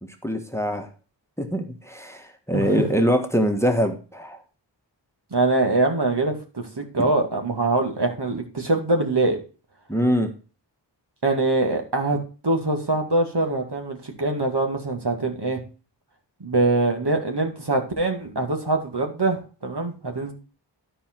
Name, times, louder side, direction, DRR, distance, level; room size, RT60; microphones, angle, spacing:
voice 1, 0.2-0.9 1.4-4.4 7.0-7.1 9.9-10.3, equal, 5° left, 5 dB, 1.4 m, -23 dB
voice 2, 5.3-9.4 11.2-12.2 12.4-15.6 16.4-20.3, right 2 dB, 60° right, 3 dB, 2.1 m, -23 dB
12.5 x 4.7 x 4.5 m, 0.35 s
wide cardioid pair, 45°, 45 cm